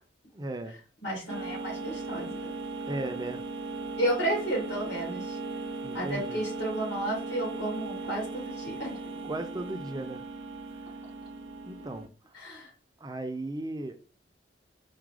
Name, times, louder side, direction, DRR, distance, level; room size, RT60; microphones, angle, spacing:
voice 1, 0.3-0.8 2.9-3.4 5.8-6.4 9.2-10.2 11.7-12.1 13.0-14.0, right 2 dB, 20° right, 0.4 m, -36 dB
voice 2, 1.0-2.5 4.0-5.4 5.9-9.0 12.3-12.7, right 1 dB, 75° left, 2.4 m, -32 dB
sound 1, 1.3-12.1, right 3 dB, 85° right, 0.6 m, -38 dB
4.8 x 2.2 x 4.7 m
head